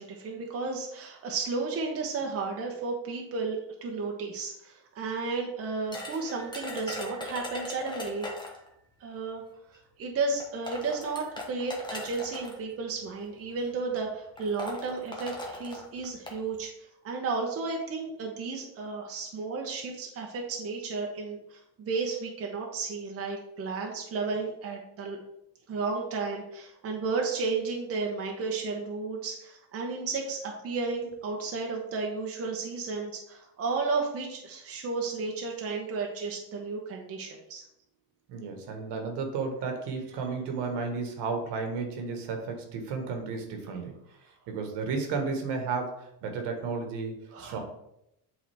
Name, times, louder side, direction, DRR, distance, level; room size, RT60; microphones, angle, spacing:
voice 1, 0.0-8.3 9.0-9.4 9.7-16.7 17.0-25.2 25.7-37.6 47.3-47.6, right 4 dB, 30° right, 0 dB, 1.0 m, -33 dB
sound 1, 5.9-8.7 9.7-9.8 10.4-12.5 13.4-13.7 14.0-14.1 14.4-16.4, left 2 dB, 10° left, 1.1 m, -39 dB
voice 2, 38.3-43.9 44.5-47.6, right 4 dB, 65° right, 4 dB, 1.5 m, -33 dB
7.6 x 3.8 x 3.4 m, 0.79 s
cardioid pair, 130°, 45 cm